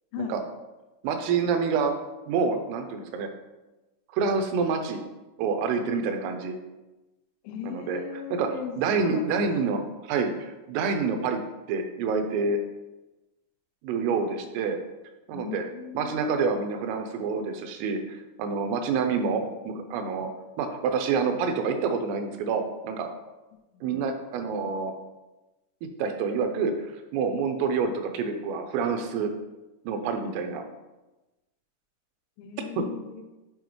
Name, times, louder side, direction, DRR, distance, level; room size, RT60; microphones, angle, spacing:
voice 1, 1.0-1.9 2.3-3.3 4.1-5.0 5.4-6.5 7.6-8.0 8.3-8.5 8.8-11.4 11.7-12.6 13.8-14.8 15.3-15.6 15.9-20.3 20.6-23.1 23.8-24.9 26.0-29.3 29.9-30.6 32.8-32.9, right 5 dB, 85° right, 6 dB, 3.2 m, -27 dB
voice 2, 7.5-9.7 15.3-16.3 23.7-24.0 32.4-33.2, left 9 dB, 85° left, 4 dB, 3.5 m, -38 dB
9.3 x 4.7 x 3.0 m, 1.1 s
omnidirectional pair, 5.9 m